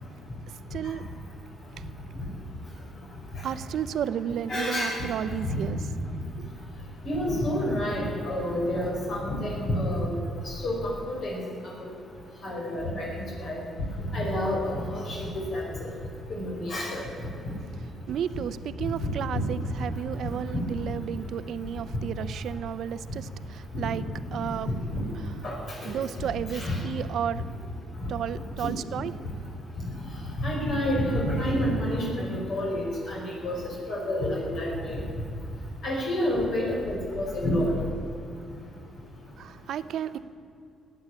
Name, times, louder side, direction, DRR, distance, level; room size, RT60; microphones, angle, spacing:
voice 1, 0.7-1.0 1.8-1.9 3.4-5.8 6.4-6.5 18.1-24.7 25.8-27.4 28.1-29.1 39.4-40.2, right 9 dB, 70° right, 14 dB, 0.6 m, -33 dB
voice 2, 4.5-5.0 5.5-5.6 7.0-10.1 10.4-11.4 12.4-13.1 13.4-13.6 14.1-15.6 16.3-17.0 18.8-19.1 20.2-20.6 23.7-23.9 25.4-25.9 26.5-26.8 28.6-28.7 30.4-33.6 33.9-35.0 35.8-37.7, left 1 dB, 60° left, -3 dB, 5.1 m, -29 dB
15.5 x 9.4 x 9.9 m, 2.6 s
cardioid pair, 90°, 0 cm